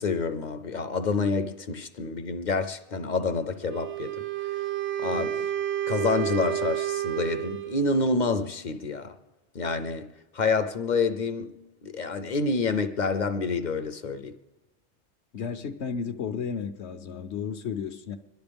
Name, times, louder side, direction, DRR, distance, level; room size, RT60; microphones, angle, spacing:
voice 1, 0.0-4.2 5.0-5.4 5.9-9.1 9.5-10.1 10.3-11.5 11.8-14.3, left 4 dB, 50° left, 0.7 m, -28 dB
Wind instrument woodwind instrument, 3.6-8.0, right 12 dB, 70° right, 1.0 m, -30 dB
voice 2, 15.3-18.2, left 6 dB, 75° left, 1.1 m, -33 dB
26.0 x 11.5 x 3.5 m
omnidirectional pair, 1.2 m